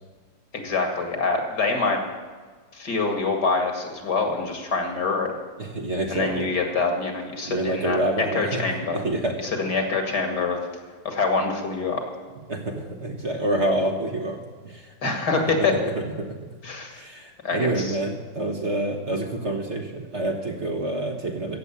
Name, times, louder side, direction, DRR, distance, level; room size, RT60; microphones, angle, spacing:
voice 1, 0.5-2.0 2.7-5.3 6.1-9.0 9.4-10.6 11.0-12.0 15.0-15.8 16.6-17.0 17.4-18.0, left 4 dB, 60° left, 4 dB, 2.6 m, -25 dB
voice 2, 5.6-6.5 7.4-8.6 8.9-9.4 12.5-15.1 15.6-15.7 16.2-16.3 16.9-21.6, right 1 dB, 40° right, 2 dB, 1.5 m, -27 dB
15.0 x 8.0 x 8.4 m, 1.4 s
omnidirectional pair, 2.0 m